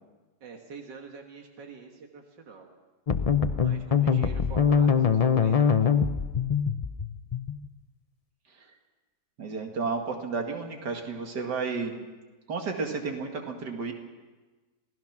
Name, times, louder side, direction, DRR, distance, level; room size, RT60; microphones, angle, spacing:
voice 1, 0.4-2.7 3.6-5.9, right 4 dB, 90° right, 2 dB, 2.3 m, -46 dB
sound 1, 3.1-7.7, left 6 dB, 55° left, 0.4 m, -23 dB
voice 2, 9.4-11.9 12.5-13.9, right 4 dB, 70° right, 3 dB, 2.7 m, -32 dB
27.0 x 17.5 x 6.0 m, 1.2 s
omnidirectional pair, 1.8 m